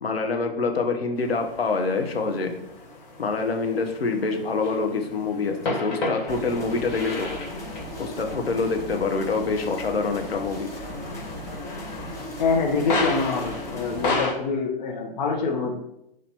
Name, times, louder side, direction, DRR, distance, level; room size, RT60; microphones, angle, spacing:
voice 1, 0.0-2.6 3.2-7.3 8.0-10.7, left 4 dB, 85° left, 4 dB, 0.8 m, -26 dB
sound 1, 1.1-14.3, left 3 dB, 30° left, 1.6 m, -34 dB
sound 2, 6.3-14.1, left 1 dB, 10° left, 1.1 m, -36 dB
voice 2, 12.4-15.7, left 4 dB, 45° left, 0 dB, 0.9 m, -25 dB
6.0 x 2.5 x 2.9 m, 0.79 s
hypercardioid pair, 125°, 30 cm